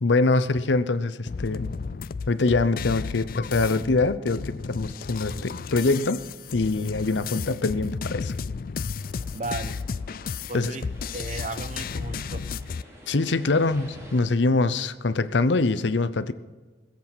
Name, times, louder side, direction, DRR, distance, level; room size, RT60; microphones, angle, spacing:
voice 1, 0.0-1.7 2.3-6.2 6.5-8.3 10.5-10.8 13.1-16.3, left 3 dB, 75° left, 14 dB, 0.7 m, -24 dB
sound 1, 1.3-12.8, left 5 dB, 50° left, 0.4 m, -33 dB
sound 2, 9.0-14.2, equal, 15° right, 2.9 m, -48 dB
voice 2, 9.3-9.8 10.5-10.9 11.1-12.5, right 2 dB, 40° right, 11 dB, 0.9 m, -34 dB
20.5 x 8.3 x 6.1 m, 1.3 s
head